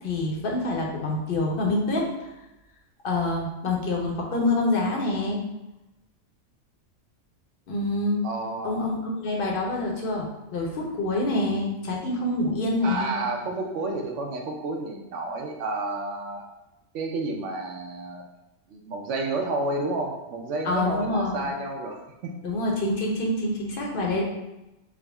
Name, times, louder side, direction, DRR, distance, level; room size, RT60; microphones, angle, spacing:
voice 1, 0.0-2.3 3.0-5.4 7.7-8.3 8.6-10.3 10.5-13.1 20.6-21.5 22.4-24.2, left 2 dB, 55° left, -1 dB, 0.7 m, -26 dB
voice 2, 8.2-8.8 12.8-16.5 16.9-18.2 18.7-22.0, right 2 dB, 70° right, 1 dB, 0.9 m, -30 dB
3.6 x 2.0 x 3.3 m, 0.99 s
omnidirectional pair, 1.3 m